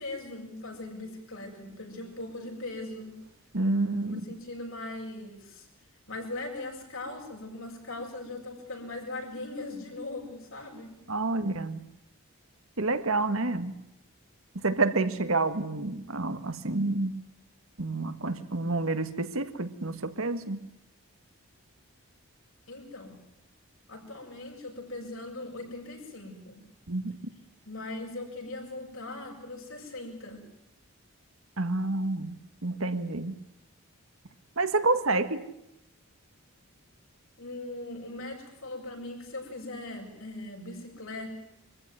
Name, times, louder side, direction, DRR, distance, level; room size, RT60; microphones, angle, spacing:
voice 1, 0.0-3.2 4.0-5.7 6.1-11.0 22.7-23.1 23.9-26.6 27.7-30.5 37.4-41.3, left 2 dB, 65° left, 1 dB, 7.4 m, -40 dB
voice 2, 3.5-4.2 11.1-11.8 12.8-13.7 14.6-17.2 17.8-20.7 26.9-27.1 31.6-32.3 32.6-33.3 34.6-35.4, right 2 dB, 65° right, 10 dB, 1.7 m, -28 dB
25.0 x 15.0 x 9.6 m, 0.84 s
head